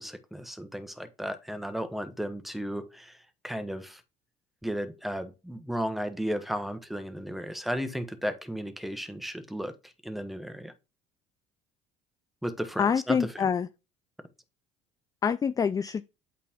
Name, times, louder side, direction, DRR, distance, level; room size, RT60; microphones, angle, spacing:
voice 1, 0.0-4.0 4.6-10.7 12.4-13.5, equal, ahead, 1.1 m, -34 dB
voice 2, 12.8-13.7 15.2-16.0, left 6 dB, 20° left, 0.3 m, -26 dB
8.3 x 4.1 x 3.6 m
supercardioid pair, 75°, 16 cm